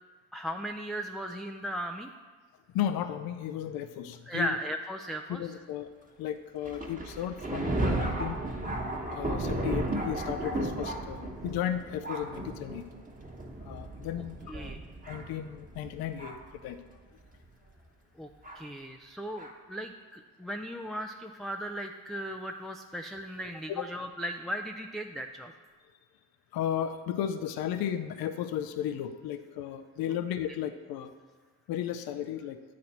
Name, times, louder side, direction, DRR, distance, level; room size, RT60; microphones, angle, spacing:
voice 1, 0.3-2.1 4.3-5.4 14.5-14.8 18.2-18.3 18.5-25.5, equal, ahead, 3 dB, 0.3 m, -37 dB
voice 2, 2.7-4.6 5.3-5.9 6.2-8.4 9.1-12.8 13.6-14.8 15.1-16.8 23.8-23.9 26.5-31.1 31.7-32.6, left 10 dB, 75° left, 9 dB, 0.5 m, -34 dB
Thunder, 6.6-16.6 17.3-17.4 18.4-18.6 19.4-19.5, right 1 dB, 20° right, 1.2 m, -34 dB
8.5 x 4.2 x 4.2 m, 1.4 s
supercardioid pair, 55°, 37 cm